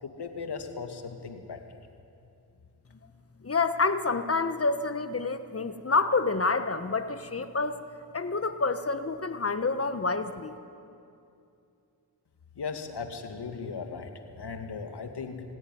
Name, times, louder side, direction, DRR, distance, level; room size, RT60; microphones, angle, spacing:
voice 1, 0.0-1.8 12.6-14.1 14.4-15.4, left 5 dB, 65° left, 5 dB, 2.4 m, -37 dB
voice 2, 3.4-7.8 8.1-10.5, left 3 dB, 35° left, 10 dB, 1.3 m, -28 dB
27.0 x 17.0 x 9.4 m, 2.6 s
wide cardioid pair, 90°, 43 cm